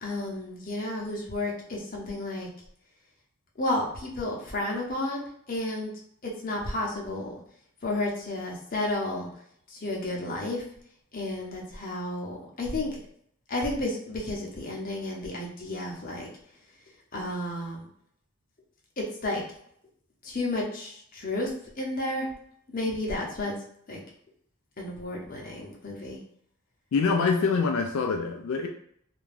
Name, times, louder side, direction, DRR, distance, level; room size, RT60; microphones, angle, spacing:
voice 1, 0.0-2.5 3.6-5.9 6.2-7.3 7.8-9.3 9.7-10.6 11.1-13.0 13.5-16.3 17.1-17.9 19.0-19.4 20.2-21.5 21.8-22.3 22.7-23.5 23.9-24.0 24.8-26.2, left 1 dB, 40° left, -1 dB, 0.6 m, -32 dB
voice 2, 26.9-28.7, left 4 dB, 75° left, 3 dB, 0.3 m, -25 dB
2.5 x 2.2 x 3.2 m, 0.66 s
head